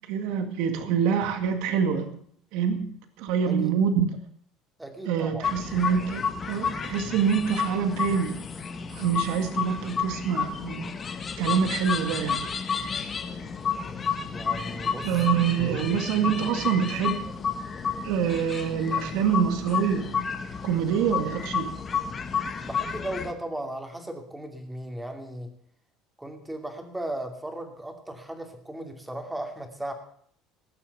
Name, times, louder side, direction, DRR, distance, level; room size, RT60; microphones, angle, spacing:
voice 1, 0.1-2.2 2.5-2.9 3.2-4.1 5.1-8.4 8.9-10.9 11.4-12.5 15.0-17.3 18.0-20.2 20.6-21.7, right 7 dB, 70° right, 7 dB, 2.0 m, -26 dB
voice 2, 4.8-5.5 14.3-15.1 15.6-16.0 22.6-25.5 26.2-29.9, right 1 dB, 5° right, 5 dB, 2.5 m, -36 dB
sound 1, 5.4-23.3, left 6 dB, 25° left, 1.5 m, -31 dB
19.0 x 7.2 x 8.2 m, 0.63 s
cardioid pair, 145°, 0 cm